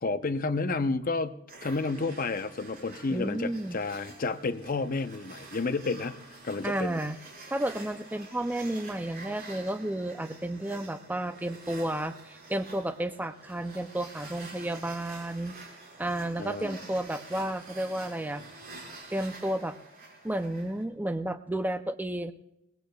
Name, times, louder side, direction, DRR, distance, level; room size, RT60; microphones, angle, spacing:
voice 1, 0.0-6.2 6.4-7.0 16.4-16.8, left 3 dB, 45° left, 10 dB, 0.7 m, -31 dB
sound 1, 1.5-20.8, right 3 dB, 50° right, 5.2 m, -48 dB
voice 2, 3.1-3.8 6.6-7.2 7.5-15.5 16.0-18.4 19.1-19.8 20.2-22.3, right 1 dB, 10° right, 9 dB, 0.5 m, -32 dB
21.5 x 19.0 x 2.3 m, 0.84 s
head